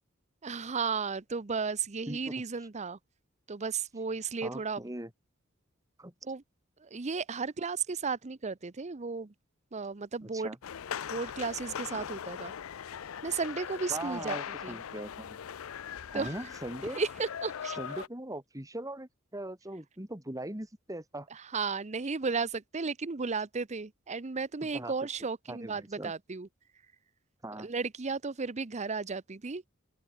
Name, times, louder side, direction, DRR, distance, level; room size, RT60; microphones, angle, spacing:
voice 1, 0.4-3.0 3.5-4.8 6.2-6.4 6.8-9.3 9.7-10.5 11.1-12.5 13.2-14.8 16.1-16.3 16.9-17.8 21.5-26.5 27.5-29.6, right 4 dB, 35° right, 0.7 m, -34 dB
voice 2, 4.4-5.1 6.0-6.1 10.2-10.6 12.0-12.1 13.9-15.4 16.1-17.0 17.7-21.3 24.7-24.9 25.5-26.1 27.4-27.7, right 1 dB, 15° right, 3.2 m, -40 dB
sound 1, 10.6-18.1, left 8 dB, 85° left, 0.5 m, -40 dB
open air
head